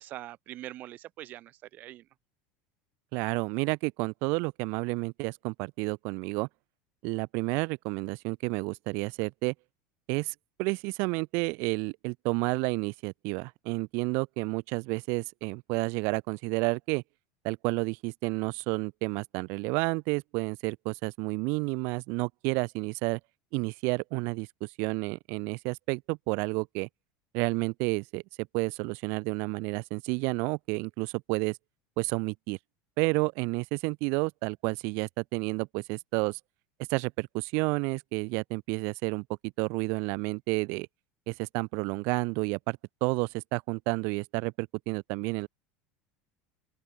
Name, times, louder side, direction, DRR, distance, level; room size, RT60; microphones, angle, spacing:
voice 1, 0.0-2.1, right 14 dB, 40° right, 2.1 m, -43 dB
voice 2, 3.1-6.5 7.0-9.5 10.1-17.0 17.4-23.2 23.5-26.9 27.3-28.2 28.5-31.6 32.0-32.6 33.0-36.4 36.9-39.2 39.6-40.9 41.3-45.5, right 30 dB, 60° right, 0.8 m, -30 dB
open air
supercardioid pair, 150°, 4 cm